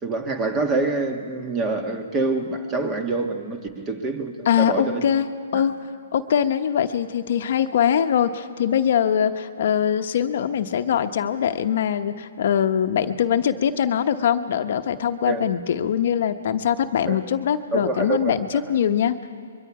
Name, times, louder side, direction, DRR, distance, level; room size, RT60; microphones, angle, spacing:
voice 1, 0.0-5.0 15.2-15.4 17.1-17.2 17.7-18.6, right 3 dB, 20° right, 1.7 m, -26 dB
voice 2, 4.5-5.7 6.1-19.2, left 9 dB, 60° left, 0.9 m, -22 dB
25.0 x 23.0 x 4.9 m
hypercardioid pair, 145°, 0 cm